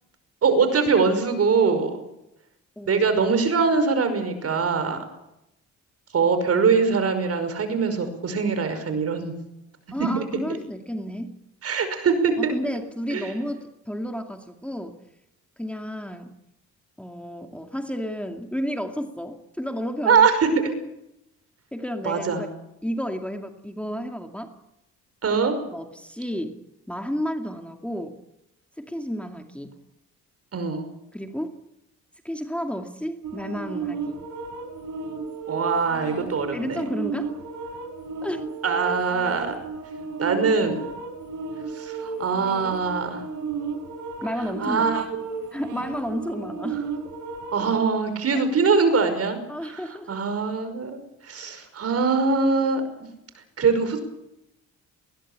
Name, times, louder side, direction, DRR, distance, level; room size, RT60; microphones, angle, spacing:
voice 1, 0.4-2.0 2.9-5.0 6.1-9.3 10.2-10.3 11.6-12.5 13.1-13.3 20.0-20.7 22.0-22.5 25.2-25.5 30.5-30.9 35.5-36.8 38.6-39.5 40.2-40.8 41.7-43.2 44.6-45.0 47.5-49.8 50.1-52.8 53.6-54.0, right 5 dB, 50° right, 9 dB, 5.5 m, -22 dB
voice 2, 2.8-3.1 9.9-11.4 12.4-15.0 15.6-16.3 17.0-20.6 21.7-22.5 22.8-24.5 25.7-26.6 26.9-28.2 28.8-29.7 31.1-31.5 32.2-34.2 36.5-37.4 38.2-38.4 44.2-45.1 45.5-46.9 48.3-48.4 49.5-50.2, equal, 5° left, 5 dB, 2.4 m, -32 dB
sound 1, 33.2-47.7, right 5 dB, 75° right, 5.4 m, -34 dB
20.5 x 19.5 x 8.8 m, 0.85 s
cardioid pair, 90°, 30 cm